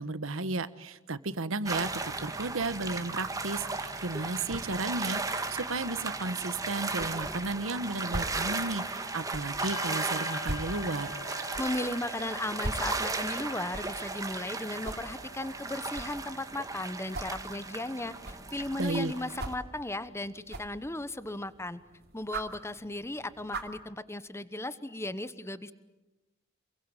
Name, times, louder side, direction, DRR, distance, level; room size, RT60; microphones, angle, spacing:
voice 1, 0.0-11.1 18.8-19.1, right 3 dB, 80° right, 14 dB, 1.3 m, -34 dB
sound 1, 1.7-19.5, right 3 dB, 15° right, 1.9 m, -36 dB
sound 2, 5.8-23.8, right 1 dB, 55° right, 2.9 m, -44 dB
Bell, 9.6-19.6, left 2 dB, 90° left, 1.7 m, -48 dB
voice 2, 11.3-21.8 22.1-25.7, left 1 dB, 15° left, 14 dB, 1.0 m, -36 dB
28.0 x 22.5 x 9.1 m, 1.0 s
head